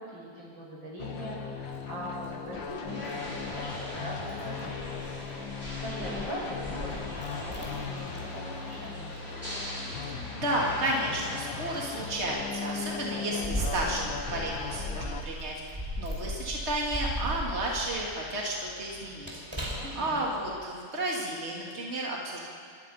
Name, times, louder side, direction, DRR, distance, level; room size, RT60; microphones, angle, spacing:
voice 1, 0.0-5.2 5.8-7.2 7.5-9.2 19.8-20.4, right 1 dB, 80° right, -4 dB, 7.3 m, -41 dB
sound 1, 1.0-15.2, left 6 dB, 75° left, 2.2 m, -38 dB
Keys jangling, 1.6-20.6, equal, 15° right, 5.3 m, -40 dB
sound 2, 2.9-11.7, equal, 30° left, 6.3 m, -41 dB
voice 2, 10.3-19.3 19.6-22.4, right 1 dB, 35° right, -2 dB, 2.9 m, -32 dB
26.0 x 24.0 x 5.8 m, 2.2 s
omnidirectional pair, 2.1 m